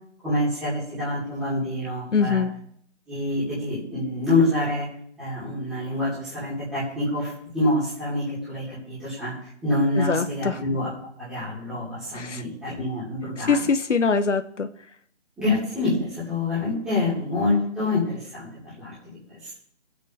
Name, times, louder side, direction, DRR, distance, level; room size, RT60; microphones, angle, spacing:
voice 1, 0.2-2.4 3.1-4.9 5.2-10.9 11.2-13.6 15.4-18.5 18.8-19.5, left 2 dB, ahead, -13 dB, 2.4 m, -26 dB
voice 2, 2.1-2.5 10.0-10.6 12.1-12.4 13.4-14.7, left 5 dB, 80° left, 9 dB, 0.9 m, -23 dB
21.5 x 8.3 x 2.7 m, 0.62 s
figure-of-eight pair, 170°, 36 cm